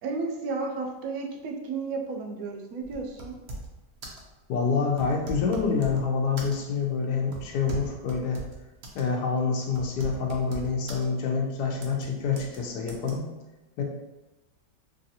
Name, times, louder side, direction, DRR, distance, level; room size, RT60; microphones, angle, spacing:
voice 1, 0.0-3.4, right 4 dB, 70° right, 1 dB, 0.9 m, -33 dB
sound 1, 2.8-3.8 4.0-4.3 4.9-6.0 6.4-6.8 7.3-9.1 9.3-9.4 9.7-11.0 11.8-12.1 12.4-12.6 12.9-13.1, right 2 dB, 90° right, 0.5 m, -39 dB
voice 2, 4.5-8.4 8.9-13.3 13.8-13.9, left 5 dB, 75° left, 1 dB, 1.2 m, -27 dB
3.2 x 2.7 x 2.7 m, 1.0 s
omnidirectional pair, 1.9 m